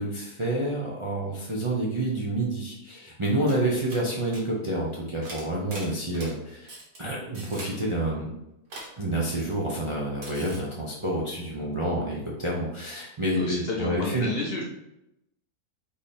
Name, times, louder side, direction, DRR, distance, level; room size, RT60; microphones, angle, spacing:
voice 1, 0.0-8.3 9.0-14.3, right 1 dB, 40° right, -4 dB, 0.4 m, -28 dB
sound 1, 3.2-3.3 3.5-3.6 3.9-4.1 4.3-4.4 5.2-6.3 6.7-7.0 7.3-7.7 8.7-8.9 10.2-10.6, right 2 dB, 65° right, 1.7 m, -40 dB
voice 2, 13.4-14.6, left 3 dB, 60° left, -1 dB, 0.6 m, -31 dB
3.6 x 3.4 x 4.2 m, 0.86 s
omnidirectional pair, 1.7 m